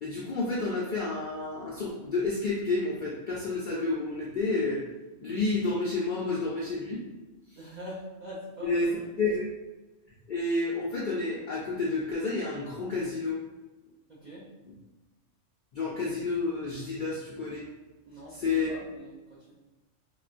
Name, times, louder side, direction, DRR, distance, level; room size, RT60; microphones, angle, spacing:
voice 1, 0.0-4.8 5.2-7.0 8.6-8.9 9.2-9.5 10.3-13.4 14.7-14.8 15.7-17.6 18.3-18.8, left 3 dB, 60° left, -5 dB, 0.5 m, -30 dB
voice 2, 7.5-8.9 14.1-14.5 18.1-19.5, equal, 50° right, -7 dB, 0.6 m, -43 dB
3.8 x 2.2 x 2.4 m, 1.1 s
omnidirectional pair, 1.3 m